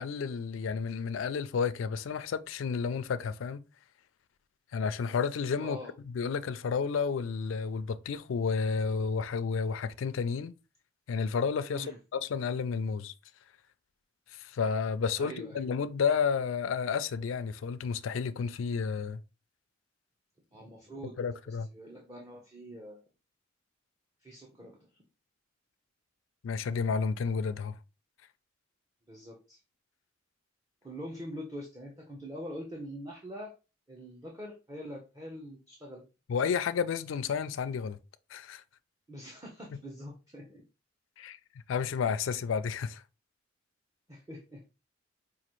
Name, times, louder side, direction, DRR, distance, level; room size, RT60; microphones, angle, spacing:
voice 1, 0.0-3.6 4.7-5.8 6.1-10.5 11.1-13.1 14.3-19.2 21.2-21.7 26.4-27.8 36.3-38.0 38.3-38.6 41.2-41.4 41.7-43.0, left 5 dB, 70° left, 0.4 m, -31 dB
voice 2, 5.6-5.9 11.7-12.0 15.2-15.6 20.5-21.2 21.5-23.0 24.2-24.8 29.1-29.6 30.8-33.5 33.9-36.0 39.1-40.6 44.1-44.6, equal, 20° right, 0.7 m, -44 dB
5.0 x 2.4 x 3.0 m
head